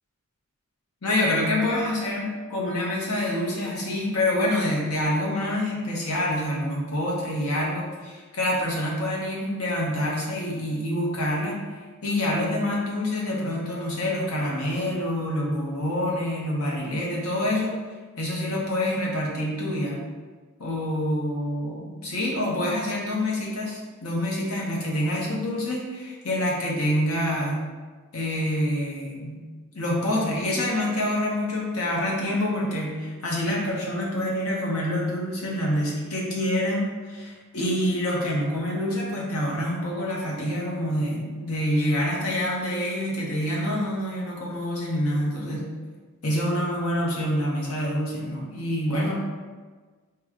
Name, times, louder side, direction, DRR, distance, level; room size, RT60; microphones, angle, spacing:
voice 1, 1.0-11.6 12.0-17.7 18.2-20.0 20.6-27.6 28.1-29.4 29.7-45.6 46.2-49.1, left 1 dB, 90° left, -3 dB, 1.0 m, -26 dB
4.7 x 2.3 x 3.6 m, 1.4 s
head